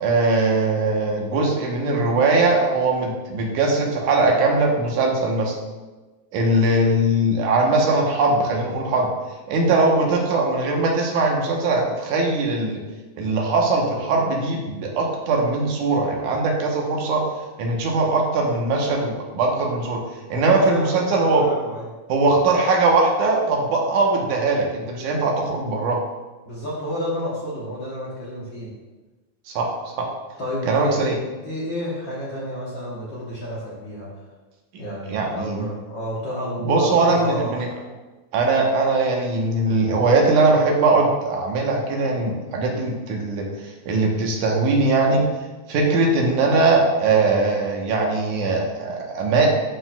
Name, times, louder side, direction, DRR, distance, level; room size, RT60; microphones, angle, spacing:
voice 1, 0.0-5.5 6.3-9.1 9.5-12.8 13.2-17.2 17.6-20.0 20.3-21.5 22.1-26.0 29.6-29.7 30.0-30.1 30.7-31.2 35.1-35.7 36.7-37.7 38.3-43.4 43.9-45.2 45.7-49.5, right 3 dB, 80° right, 0 dB, 2.5 m, -20 dB
voice 2, 20.3-21.9 26.4-28.7 30.4-31.0 31.4-34.1 34.8-37.5, equal, 55° left, -7 dB, 1.4 m, -30 dB
11.5 x 4.6 x 2.2 m, 1.2 s
omnidirectional pair, 3.5 m